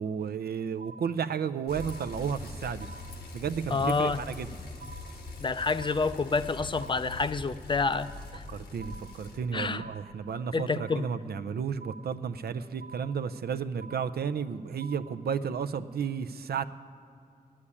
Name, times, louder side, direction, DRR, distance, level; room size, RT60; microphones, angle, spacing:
voice 1, 0.0-2.9 3.3-4.5 8.5-16.6, right 7 dB, 90° right, 12 dB, 0.5 m, -33 dB
sound 1, 0.8-1.5 1.8-2.5 2.8-3.5 3.8-4.5 4.8-5.5 5.8-6.5 6.8-7.5 7.8-8.5 8.8-9.5 9.8-10.5 10.8-11.5 11.8-12.5 12.8-13.5 13.8-14.5 14.8-15.5, right 3 dB, 65° right, 1.0 m, -50 dB
Bicycle, 1.7-9.4, left 3 dB, 85° left, 1.5 m, -43 dB
voice 2, 3.7-4.2 5.4-8.4 9.5-9.9 10.5-11.1, left 4 dB, 30° left, 13 dB, 0.4 m, -28 dB
9.7 x 8.6 x 9.9 m, 2.4 s
wide cardioid pair, 125°, 16 cm